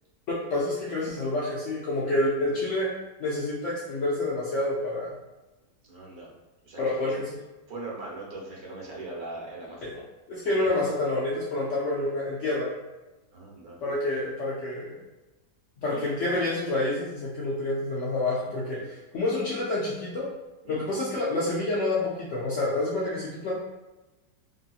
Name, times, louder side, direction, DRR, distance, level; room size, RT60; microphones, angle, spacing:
voice 1, 0.5-2.9 3.2-5.1 6.8-7.3 9.8-9.9 10.3-12.7 13.8-15.0 15.8-20.3 20.7-23.5, left 2 dB, 70° left, -6 dB, 0.7 m, -28 dB
voice 2, 5.8-6.3 6.6-7.2 7.7-9.9 10.5-10.6 13.3-13.8 15.9-16.0 18.4-18.8 20.6-20.8, right 2 dB, 70° right, -3 dB, 1.3 m, -40 dB
3.1 x 2.8 x 2.3 m, 1.1 s
omnidirectional pair, 1.8 m